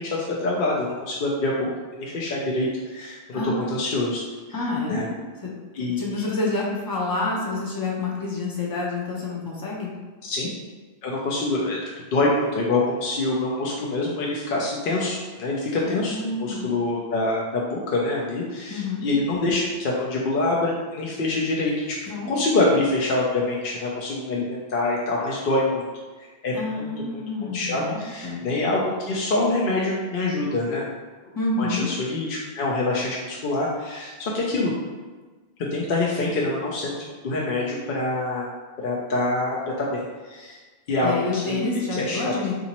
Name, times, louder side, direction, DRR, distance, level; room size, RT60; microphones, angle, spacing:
voice 1, 0.0-4.2 4.9-5.0 5.7-6.2 10.2-10.5 11.0-11.8 12.1-21.9 22.3-25.8 26.2-26.9 27.4-30.9 31.6-34.7 35.7-36.9 37.2-38.5 38.8-40.6 40.9-42.3, left 2 dB, 65° left, -4 dB, 0.7 m, -25 dB
voice 2, 4.5-5.1 6.0-9.9 15.8-16.7 18.7-19.1 22.1-22.3 26.5-28.4 31.3-31.9 41.0-42.5, left 3 dB, 25° left, -4 dB, 0.6 m, -28 dB
3.9 x 2.6 x 2.9 m, 1.3 s
omnidirectional pair, 1.0 m